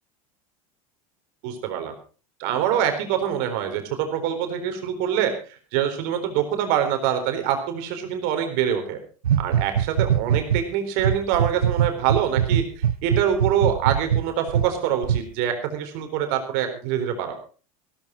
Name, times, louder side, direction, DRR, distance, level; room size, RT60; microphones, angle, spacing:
voice 1, 1.4-1.9 2.4-9.0 9.4-17.3, right 9 dB, 60° right, 6 dB, 4.1 m, -25 dB
sound 1, 9.2-10.6 11.0-14.7 15.0-15.2, right 9 dB, 85° right, 0.7 m, -22 dB
16.0 x 14.0 x 4.5 m, 0.37 s
hypercardioid pair, 80°, 18 cm